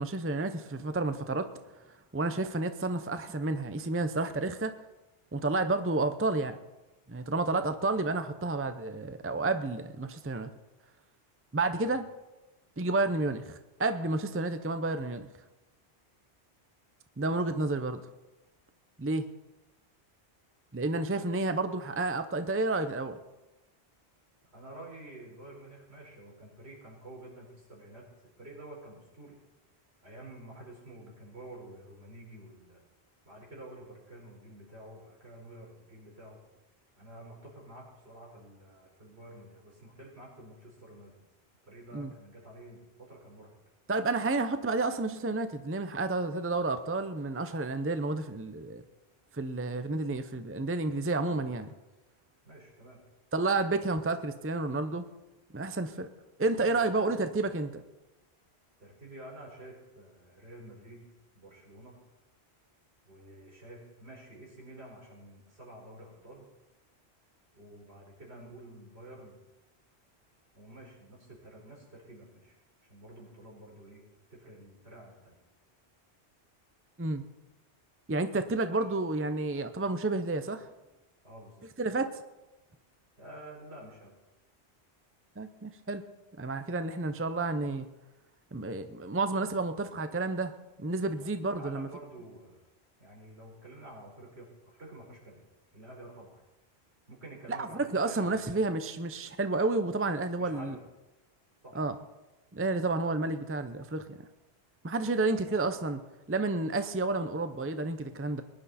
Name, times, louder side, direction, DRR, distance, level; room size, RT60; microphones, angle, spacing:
voice 1, 0.0-1.5 2.1-4.7 5.3-6.6 7.1-10.5 11.5-12.0 12.8-15.3 17.2-18.0 19.0-19.3 20.7-23.2 41.9-42.1 43.9-48.8 49.3-51.7 53.3-55.0 55.5-56.1 56.4-57.8 77.0-77.2 78.1-80.7 81.8-82.2 85.4-86.0 86.4-87.9 88.5-91.9 97.5-100.8 101.7-101.9 102.5-104.2 104.8-106.0 106.3-108.4, right 2 dB, 15° right, 9 dB, 0.6 m, -30 dB
voice 2, 24.5-29.4 30.0-32.9 33.2-36.4 37.0-41.3 41.6-43.5 51.2-51.7 52.4-53.0 56.6-57.1 58.8-61.1 61.3-62.0 63.0-66.5 67.5-69.4 70.5-72.5 72.9-74.0 74.3-75.4 78.7-78.9 81.2-81.7 83.2-84.1 91.2-91.3 91.6-92.6 93.0-95.4 95.7-96.4 97.1-98.6 100.4-100.8 101.6-101.8 105.4-105.6, right 1 dB, 75° right, -3 dB, 5.0 m, -49 dB
21.5 x 11.0 x 4.3 m, 1.0 s
omnidirectional pair, 1.1 m